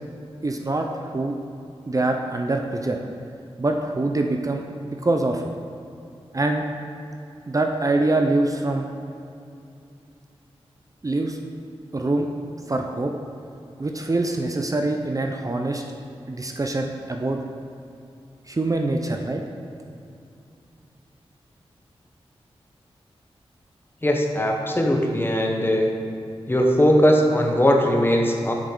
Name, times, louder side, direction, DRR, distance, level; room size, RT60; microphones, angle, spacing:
voice 1, 0.4-1.4 1.9-3.0 3.6-5.4 6.3-6.6 7.5-8.9 11.0-11.4 11.9-12.3 12.7-13.1 13.8-15.8 16.3-17.4 18.5-19.4, right 2 dB, 30° right, 3 dB, 0.5 m, -24 dB
voice 2, 24.0-25.9 26.5-28.5, equal, 20° left, 1 dB, 1.0 m, -19 dB
7.1 x 5.1 x 3.8 m, 2.6 s
cardioid pair, 45°, 11 cm